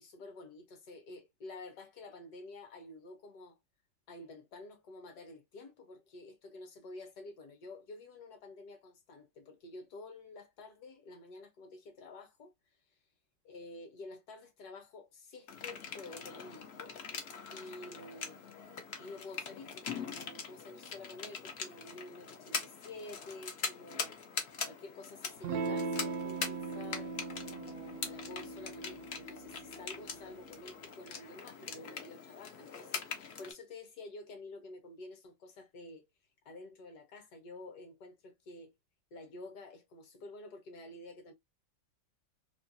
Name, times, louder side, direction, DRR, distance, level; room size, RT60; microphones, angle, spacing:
voice 1, 0.0-3.6 4.1-12.5 13.4-17.0 17.5-18.4 19.0-24.1 24.6-27.1 27.5-36.1 36.4-38.7 39.1-41.3, left 2 dB, 65° left, 1.2 m, -50 dB
sound 1, 15.5-33.5, left 5 dB, 90° left, 0.5 m, -43 dB
Electric guitar / Strum, 25.4-30.5, right 3 dB, 70° right, 0.9 m, -40 dB
3.1 x 2.3 x 2.5 m
omnidirectional pair, 2.0 m